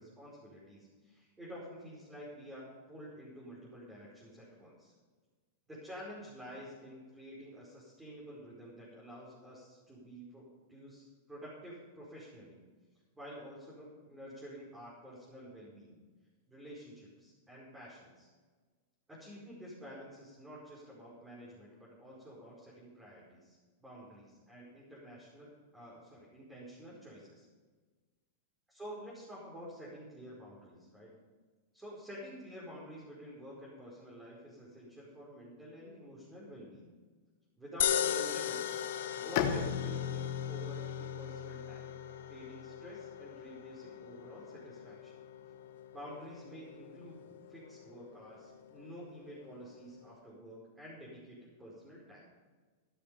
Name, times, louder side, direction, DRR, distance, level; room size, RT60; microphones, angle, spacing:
voice 1, 0.0-4.9 5.7-12.6 13.1-15.9 16.5-18.3 19.1-27.4 28.7-31.1 31.7-36.9 37.6-38.8 39.1-42.0 42.3-45.1 45.9-52.3, equal, 10° right, -7 dB, 5.0 m, -50 dB
sound 1, 37.8-50.1, left 9 dB, 70° left, 1.2 m, -39 dB
Bowed string instrument, 39.4-43.0, left 8 dB, 55° left, 1.5 m, -37 dB
15.0 x 12.0 x 5.3 m, 1.4 s
hypercardioid pair, 105°, 0 cm